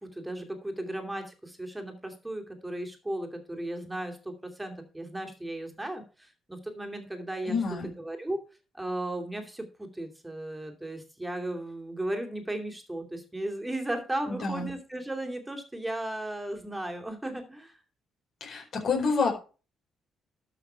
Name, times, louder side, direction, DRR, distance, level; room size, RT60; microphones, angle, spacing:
voice 1, 0.0-8.4 8.7-17.8, right 1 dB, 10° right, 4 dB, 2.6 m, -36 dB
voice 2, 7.5-7.9 14.3-14.7 18.4-19.3, left 4 dB, 55° left, 2 dB, 4.3 m, -28 dB
12.5 x 6.0 x 4.6 m, 0.34 s
cardioid pair, 90°, 0 cm